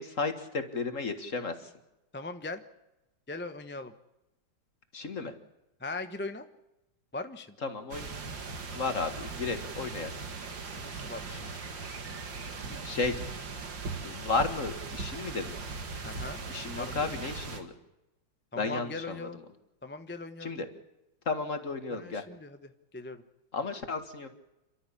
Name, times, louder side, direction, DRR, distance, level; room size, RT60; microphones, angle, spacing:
voice 1, 0.0-1.5 4.9-5.3 7.6-8.1 8.7-10.1 12.7-13.2 14.0-15.6 16.5-17.7 18.6-19.2 20.4-20.7 21.3-22.2 23.5-24.3, left 4 dB, 40° left, 8 dB, 2.0 m, -33 dB
voice 2, 2.1-2.6 3.3-3.9 5.8-6.5 7.1-7.6 10.8-11.5 16.0-17.2 18.5-19.4 19.8-20.6 21.9-23.2, left 3 dB, 10° left, 8 dB, 0.8 m, -40 dB
sound 1, 7.9-17.6, right 4 dB, 70° right, 2.8 m, -39 dB
28.5 x 13.0 x 8.5 m, 0.93 s
omnidirectional pair, 2.1 m